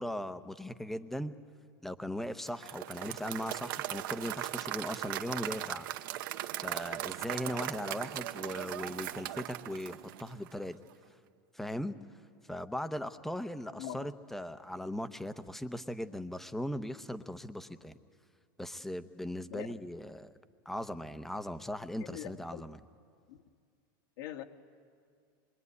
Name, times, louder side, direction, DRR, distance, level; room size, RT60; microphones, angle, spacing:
voice 1, 0.0-1.3 1.8-5.9 6.6-10.8 11.5-12.0 12.5-18.0 18.6-20.3 20.7-22.8, left 1 dB, 5° left, 10 dB, 0.8 m, -39 dB
Applause / Crowd, 2.5-10.6, right 14 dB, 70° right, 1.0 m, -39 dB
voice 2, 22.0-22.6 23.3-23.4 24.2-24.4, left 12 dB, 70° left, 3 dB, 2.0 m, -42 dB
26.5 x 23.5 x 9.6 m, 2.2 s
supercardioid pair, 150°, 11 cm